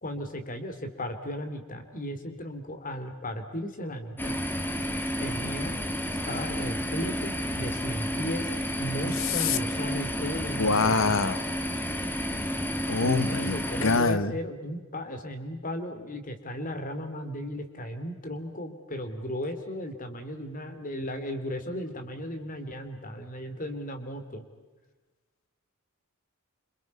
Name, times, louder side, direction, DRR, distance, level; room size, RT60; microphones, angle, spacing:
voice 1, 0.0-4.4 5.2-5.8 6.2-8.5 8.8-10.9 13.0-13.1 13.4-24.4, equal, 40° left, 7 dB, 3.1 m, -35 dB
sound 1, 4.2-14.0, equal, 10° left, 1.5 m, -31 dB
voice 2, 9.3-9.6 10.6-11.4 12.9-14.3, left 4 dB, 70° left, 13 dB, 1.2 m, -25 dB
29.5 x 27.0 x 5.5 m, 1.2 s
head